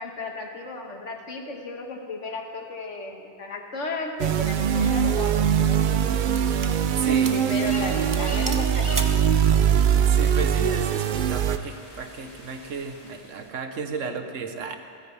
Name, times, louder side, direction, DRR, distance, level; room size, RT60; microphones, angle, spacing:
voice 1, 0.0-6.0 7.1-9.0 14.0-14.2, left 3 dB, 70° left, 2 dB, 1.7 m, -34 dB
sound 1, 4.2-11.6, right 8 dB, 65° right, 0.5 m, -22 dB
sound 2, 5.5-13.5, left 1 dB, 30° left, 2.0 m, -43 dB
sound 3, 6.3-6.8 7.2-7.5 7.8-7.9 8.1-9.3, right 3 dB, 20° right, 0.6 m, -35 dB
voice 2, 6.9-7.3 10.0-14.7, right 5 dB, 85° right, 6 dB, 1.3 m, -33 dB
28.0 x 10.0 x 3.3 m, 2.4 s
omnidirectional pair, 1.3 m